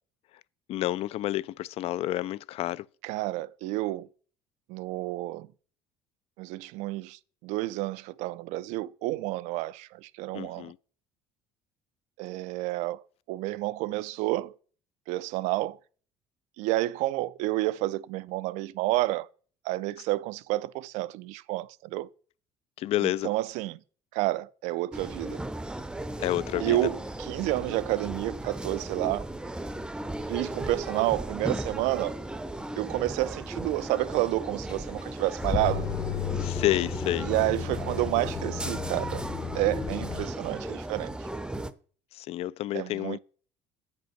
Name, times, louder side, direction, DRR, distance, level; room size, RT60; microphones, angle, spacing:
voice 1, 0.7-2.9 10.3-10.8 22.8-23.3 26.2-26.9 36.4-37.3 42.1-43.2, left 14 dB, 60° left, 0.4 m, -29 dB
voice 2, 3.0-4.1 4.7-5.5 6.4-10.7 12.2-13.0 13.3-14.5 15.1-15.8 16.6-19.3 19.6-22.1 23.0-23.8 24.1-25.4 26.6-29.3 30.3-32.1 32.8-35.9 37.2-39.2 39.5-41.3 42.7-43.2, right 17 dB, 80° right, 0.4 m, -30 dB
sound 1, 24.9-41.7, right 1 dB, 5° right, 0.6 m, -36 dB
sound 2, 34.7-40.2, left 7 dB, 35° left, 0.8 m, -33 dB
7.8 x 5.3 x 5.8 m
supercardioid pair, 100°, 12 cm